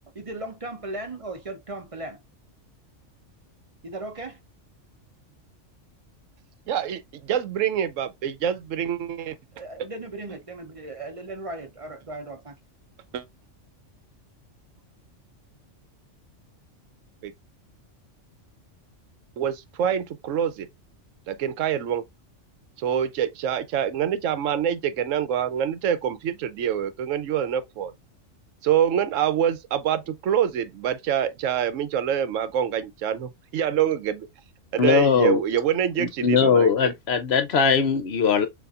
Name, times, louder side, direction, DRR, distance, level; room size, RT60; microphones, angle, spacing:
voice 1, 0.1-2.2 3.8-4.4 9.5-12.6, right 2 dB, 35° right, 0.7 m, -37 dB
voice 2, 6.7-9.3 13.1-13.2 17.2-17.3 19.4-20.7 21.3-22.0 22.8-27.9 28.6-34.3 34.7-36.9, right 9 dB, 80° right, 1.0 m, -26 dB
voice 3, 34.8-35.4 36.0-38.5, left 6 dB, 65° left, 0.8 m, -20 dB
6.8 x 2.6 x 2.4 m
omnidirectional pair, 1.3 m